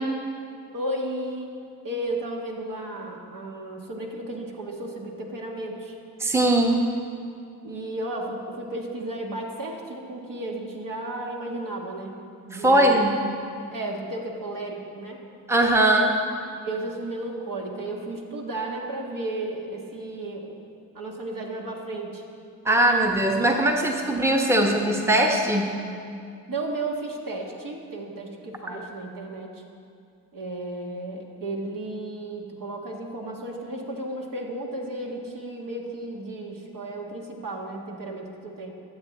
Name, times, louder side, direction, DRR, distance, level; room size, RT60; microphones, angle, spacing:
voice 1, 0.7-1.5 1.8-6.0 7.6-12.2 12.4-13.2 13.7-15.2 16.6-22.2 26.5-29.6 30.3-38.7, right 2 dB, 55° right, 0 dB, 1.6 m, -34 dB
voice 2, 6.2-6.9 12.5-13.1 15.5-16.1 22.6-25.7, right 1 dB, 5° right, 1 dB, 1.1 m, -20 dB
12.0 x 7.5 x 4.2 m, 2.4 s
supercardioid pair, 45°, 40 cm